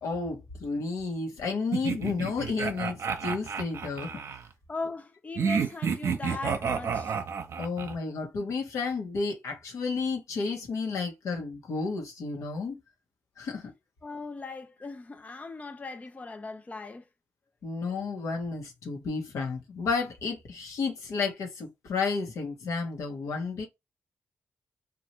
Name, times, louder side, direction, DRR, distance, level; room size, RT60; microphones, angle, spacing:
voice 1, 0.0-4.2 7.6-12.8 13.4-13.7 17.6-23.7, left 4 dB, 80° left, 1.0 m, -32 dB
sound 1, 1.7-4.4 5.4-8.0, right 6 dB, 70° right, 0.6 m, -30 dB
voice 2, 4.7-7.2 14.0-17.1, left 3 dB, 30° left, 0.5 m, -39 dB
2.9 x 2.4 x 3.0 m
cardioid pair, 60°, 5 cm